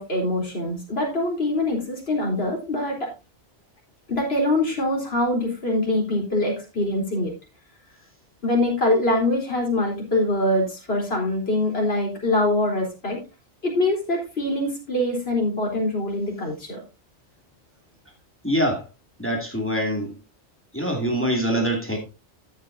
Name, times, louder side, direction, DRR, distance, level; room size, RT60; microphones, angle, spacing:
voice 1, 0.0-3.1 4.1-7.3 8.4-13.2 13.6-16.8, left 1 dB, 55° left, 4.1 m, -24 dB
voice 2, 18.4-18.9 19.2-20.1 20.7-22.0, equal, 10° left, 2.5 m, -24 dB
13.0 x 8.5 x 2.7 m
omnidirectional pair, 1.2 m